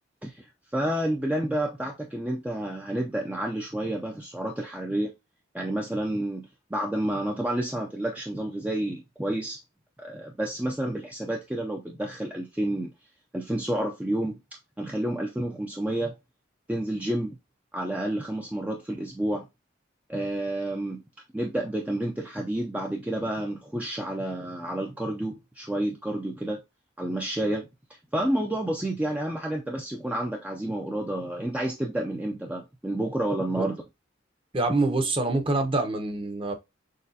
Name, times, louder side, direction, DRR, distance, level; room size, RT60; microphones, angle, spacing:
voice 1, 0.7-5.1 5.5-9.6 10.0-12.9 13.3-14.4 14.8-16.1 16.7-17.4 17.7-19.5 20.1-21.0 21.3-26.6 27.0-33.8, right 1 dB, 5° right, 0.4 m, -30 dB
voice 2, 34.5-36.5, right 2 dB, 25° right, 0.8 m, -25 dB
6.4 x 2.3 x 2.7 m
head